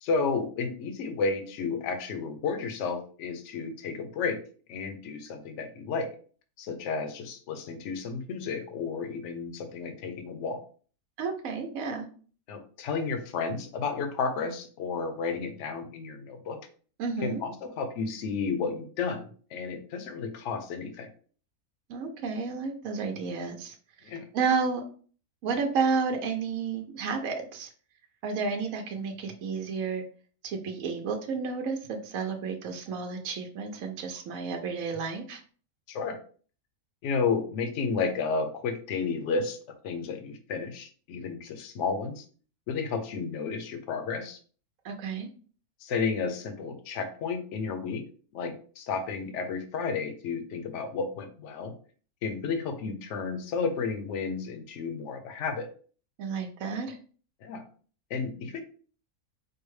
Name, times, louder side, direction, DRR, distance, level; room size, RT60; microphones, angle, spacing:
voice 1, 0.0-4.4 4.7-6.1 6.6-10.6 12.5-16.6 17.2-21.1 24.0-24.3 35.9-36.2 37.0-39.6 39.8-42.3 42.7-44.4 45.8-48.0 48.3-51.7 52.2-55.7 57.4-57.6 58.1-58.6, left 5 dB, 65° left, 7 dB, 0.9 m, -32 dB
voice 2, 11.2-12.1 17.0-17.4 21.9-23.7 24.0-24.8 25.4-27.7 28.2-30.0 30.4-35.4 44.8-45.3 56.2-57.0, right 5 dB, 70° right, 3 dB, 1.0 m, -31 dB
4.8 x 2.2 x 3.1 m, 0.43 s
omnidirectional pair, 1.5 m